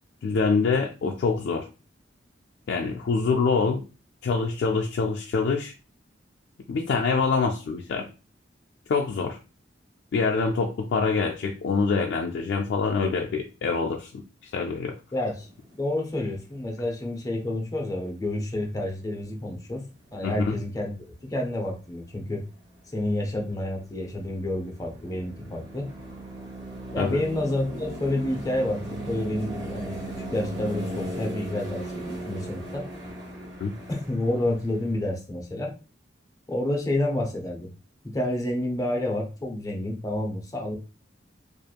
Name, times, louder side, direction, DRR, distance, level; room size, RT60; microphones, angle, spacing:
voice 1, 0.2-1.7 2.7-3.9 4.2-5.7 6.7-8.1 8.9-9.4 10.1-14.9 20.2-20.6 27.0-27.2 33.6-33.7, left 4 dB, 60° left, 1 dB, 0.3 m, -25 dB
voice 2, 15.1-15.5 15.7-19.8 20.1-20.9 21.2-22.4 22.9-25.9 26.9-30.0 30.3-32.9 33.9-35.7 36.5-37.7 38.0-40.8, left 1 dB, 20° left, 0 dB, 0.6 m, -29 dB
sound 1, 15.4-15.8 16.0-16.4 16.8-16.9 19.0-19.1 19.3-23.5 23.8-35.0, right 1 dB, 70° right, 1.0 m, -38 dB
2.9 x 2.4 x 2.3 m, 0.33 s
head